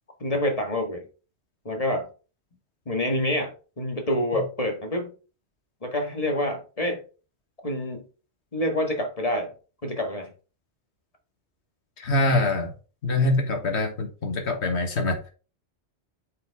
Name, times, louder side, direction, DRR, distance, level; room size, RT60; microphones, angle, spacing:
voice 1, 0.2-1.0 1.6-2.1 2.8-5.1 5.8-7.0 7.6-8.0 8.5-9.5 9.8-10.3, left 1 dB, 35° left, 1.7 m, -27 dB
voice 2, 12.0-12.7 13.0-15.3, left 2 dB, 80° left, 1.7 m, -24 dB
8.8 x 5.6 x 3.5 m
omnidirectional pair, 1.1 m